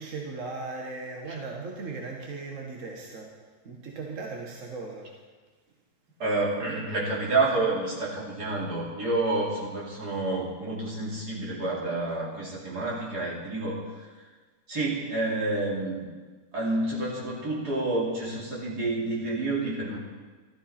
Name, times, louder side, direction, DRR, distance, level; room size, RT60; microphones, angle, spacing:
voice 1, 0.0-3.4 3.6-5.2, right 3 dB, 50° right, 0 dB, 1.5 m, -37 dB
voice 2, 6.2-14.3 14.7-16.1 16.5-20.0, right 2 dB, 70° right, -5 dB, 3.3 m, -29 dB
13.0 x 13.0 x 4.3 m, 1.4 s
omnidirectional pair, 1.8 m